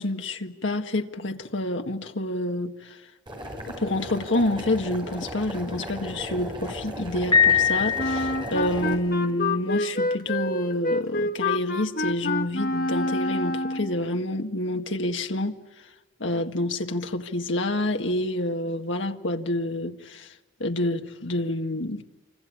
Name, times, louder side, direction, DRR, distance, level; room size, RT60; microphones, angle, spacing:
voice 1, 0.0-3.0 3.8-15.5 16.2-20.3 20.6-22.0, left 1 dB, 70° left, 1.8 m, -28 dB
Boiling, 3.3-8.9, equal, 25° right, 6.4 m, -36 dB
Piano, 7.3-8.8, left 7 dB, 20° left, 5.1 m, -22 dB
Wind instrument woodwind instrument, 8.0-14.0, left 2 dB, 45° left, 1.3 m, -27 dB
27.5 x 25.0 x 8.5 m
head